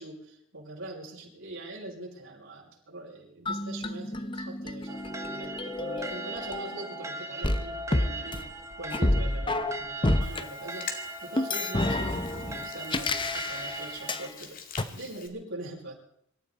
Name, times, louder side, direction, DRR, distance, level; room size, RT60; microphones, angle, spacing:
voice 1, 0.0-8.4 8.8-14.6 14.9-16.0, right 1 dB, 70° right, -3 dB, 6.0 m, -42 dB
sound 1, 3.5-7.0 7.4-10.4 11.4-14.3 14.8-14.9, left 1 dB, 25° left, 0.9 m, -30 dB
sound 2, 4.9-14.3, right 1 dB, 15° right, 1.2 m, -39 dB
Hands, 10.2-15.3, left 6 dB, 40° left, 2.2 m, -45 dB
25.5 x 13.5 x 4.2 m, 0.72 s
head